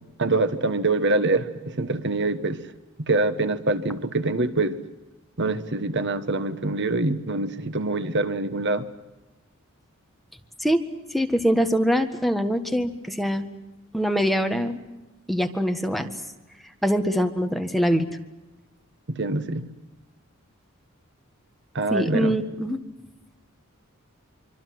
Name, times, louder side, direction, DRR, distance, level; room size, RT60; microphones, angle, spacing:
voice 1, 0.2-2.6 3.0-4.8 5.4-8.9 19.1-19.7 21.7-22.4, right 2 dB, 55° right, 11 dB, 1.4 m, -25 dB
voice 2, 11.1-13.5 13.9-14.8 15.3-16.1 16.8-18.1 21.9-22.8, equal, ahead, 6 dB, 1.7 m, -23 dB
25.5 x 25.0 x 7.8 m, 1.0 s
head